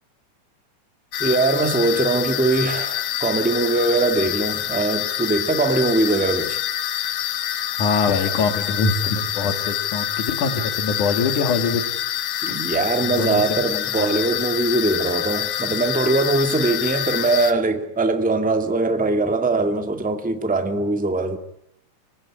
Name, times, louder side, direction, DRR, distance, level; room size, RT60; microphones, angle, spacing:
sound 1, 1.1-17.5, left 12 dB, 65° left, 2.2 m, -26 dB
voice 1, 1.2-6.6 12.4-21.4, right 2 dB, 5° right, 1.4 m, -21 dB
voice 2, 7.8-11.8 13.0-13.6 14.0-14.1, left 4 dB, 85° left, 3.7 m, -23 dB
25.5 x 20.5 x 9.9 m
omnidirectional pair, 3.4 m